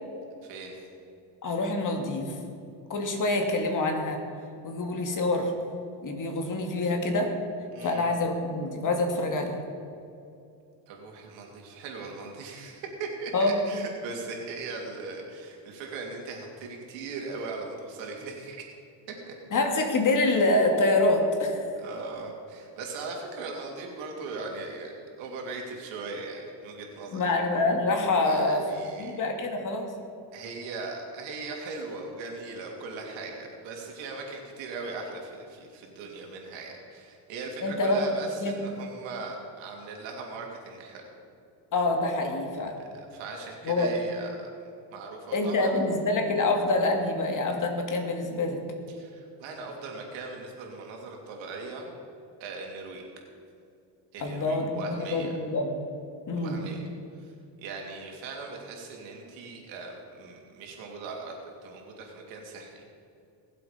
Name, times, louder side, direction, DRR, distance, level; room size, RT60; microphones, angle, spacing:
voice 1, 0.4-0.8 7.7-8.0 10.9-18.6 19.3-19.4 21.8-27.3 28.2-29.2 30.3-41.1 43.1-45.8 48.9-51.9 52.4-53.0 54.1-55.3 56.3-56.9 57.2-57.3 57.6-62.8, right 3 dB, 80° right, 1 dB, 3.2 m, -39 dB
voice 2, 1.4-2.3 2.9-4.2 4.6-5.5 6.0-7.3 7.8-9.6 13.3-13.5 19.5-21.6 27.1-28.6 29.0-29.9 37.6-38.0 38.4-38.6 41.7-42.8 43.6-43.9 45.3-48.6 54.2-55.8 56.3-56.6, left 2 dB, 45° left, 3 dB, 2.5 m, -26 dB
21.5 x 7.6 x 5.2 m, 2.6 s
supercardioid pair, 100°, 45 cm